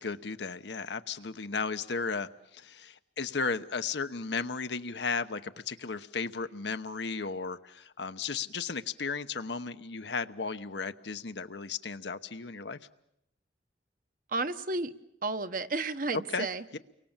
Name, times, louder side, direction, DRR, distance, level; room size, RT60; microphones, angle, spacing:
voice 1, 0.0-2.3 2.5-12.8 16.1-16.5 16.7-16.8, left 4 dB, 80° left, 10 dB, 1.0 m, -35 dB
voice 2, 14.3-14.9 15.2-16.6, right 3 dB, 50° right, 10 dB, 1.0 m, -32 dB
29.5 x 24.0 x 7.4 m, 0.80 s
head